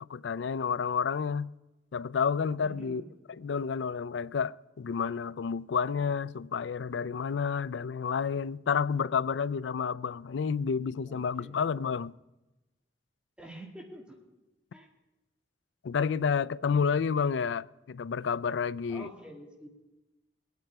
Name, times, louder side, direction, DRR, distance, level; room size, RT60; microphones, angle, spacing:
voice 1, 0.1-1.5 1.9-3.0 3.3-12.1 15.8-19.1, left 6 dB, 85° left, 0.4 m, -30 dB
voice 2, 2.6-3.1 11.0-11.8 13.4-14.2 14.7-14.9 18.9-19.7, right 1 dB, 5° right, 2.2 m, -47 dB
21.5 x 9.4 x 4.7 m
head